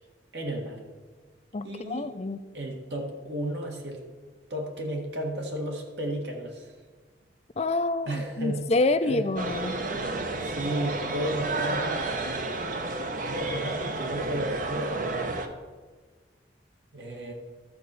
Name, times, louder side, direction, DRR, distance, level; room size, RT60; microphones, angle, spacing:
voice 1, 0.3-0.8 1.6-2.1 2.5-4.0 4.5-6.8 8.1-8.7 9.0-9.3 10.4-12.4 13.3-15.3 16.9-17.3, right 1 dB, 70° right, 1 dB, 1.7 m, -33 dB
voice 2, 1.5-2.4 7.6-9.8, left 2 dB, 35° left, 11 dB, 0.5 m, -27 dB
sound 1, 9.4-15.5, right 2 dB, 45° right, 0.8 m, -31 dB
13.0 x 4.3 x 6.8 m, 1.5 s
head